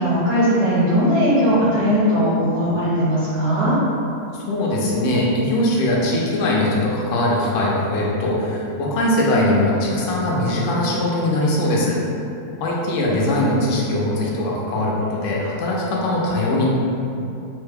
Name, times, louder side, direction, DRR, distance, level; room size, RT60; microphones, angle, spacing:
voice 1, 0.0-3.8, equal, 60° right, -11 dB, 1.0 m, -18 dB
voice 2, 4.4-12.0 12.6-16.7, left 1 dB, 65° left, -4 dB, 0.8 m, -21 dB
3.2 x 2.2 x 3.2 m, 2.7 s
omnidirectional pair, 1.6 m